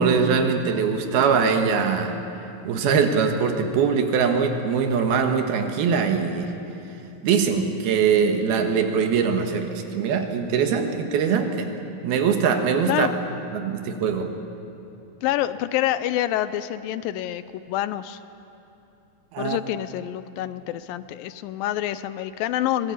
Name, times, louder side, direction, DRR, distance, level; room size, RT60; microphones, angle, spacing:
voice 1, 0.0-2.1 2.7-6.5 7.2-11.7 12.0-13.1 13.5-14.3 19.3-19.6, right 6 dB, 85° right, 5 dB, 3.4 m, -22 dB
voice 2, 15.2-18.2 19.4-22.9, left 13 dB, 80° left, 14 dB, 2.3 m, -27 dB
24.5 x 19.5 x 8.5 m, 2.9 s
omnidirectional pair, 4.2 m